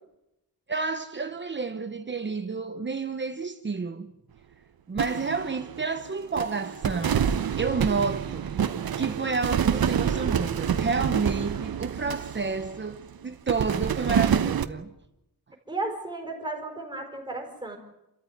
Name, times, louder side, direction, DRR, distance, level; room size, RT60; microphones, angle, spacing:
voice 1, 0.7-4.1 4.9-7.3 7.6-8.6 9.0-14.9, right 4 dB, 35° right, 0.9 m, -30 dB
sound 1, 5.0-6.1 6.4-13.0 13.5-14.7, right 8 dB, 90° right, 1.1 m, -27 dB
voice 2, 15.7-17.8, right 2 dB, 15° right, 4.7 m, -34 dB
29.0 x 14.0 x 9.4 m
wide cardioid pair, 160°, 35 cm